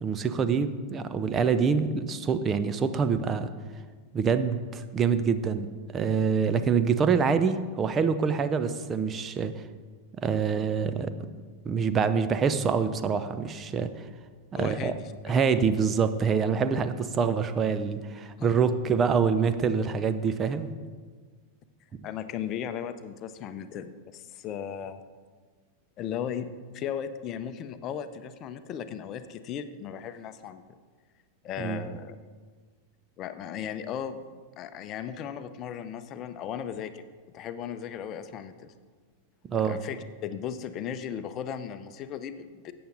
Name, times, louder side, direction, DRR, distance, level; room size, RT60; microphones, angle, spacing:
voice 1, 0.0-3.5 4.1-5.7 5.9-9.5 10.2-11.1 11.6-14.0 14.5-14.9 15.2-20.7 31.6-31.8 39.5-39.8, right 6 dB, 25° right, 11 dB, 0.7 m, -26 dB
voice 2, 14.6-15.1 18.4-18.5 22.0-25.0 26.0-30.6 31.4-32.2 33.2-37.0 37.3-38.7 39.5-42.7, left 8 dB, 35° left, 11 dB, 0.7 m, -36 dB
13.5 x 8.7 x 3.9 m, 1.5 s
figure-of-eight pair, 90°, 0 cm